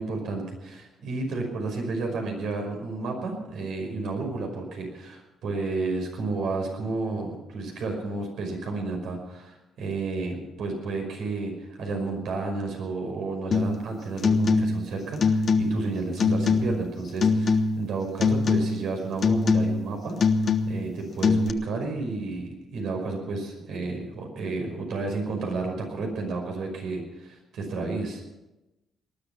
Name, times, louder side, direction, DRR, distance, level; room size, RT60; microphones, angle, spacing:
voice 1, 0.0-20.2 20.6-28.2, right 3 dB, 75° right, 2 dB, 5.4 m, -31 dB
sound 1, 13.5-13.8 14.2-14.9 15.2-15.9 16.2-16.9 17.2-17.9 18.2-18.9 19.2-19.9 20.2-20.9 21.2-21.5, left 4 dB, 50° left, 1.2 m, -23 dB
19.5 x 12.5 x 5.9 m, 0.97 s
cardioid pair, 90°, 0 cm